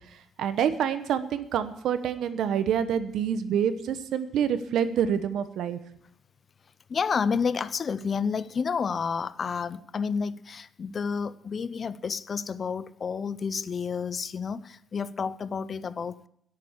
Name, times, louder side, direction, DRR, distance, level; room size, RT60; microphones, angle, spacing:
voice 1, 0.4-5.8, right 8 dB, 80° right, 1.0 m, -27 dB
voice 2, 6.9-16.3, left 6 dB, 45° left, 0.6 m, -30 dB
11.0 x 8.5 x 8.5 m
cardioid pair, 90°, 0 cm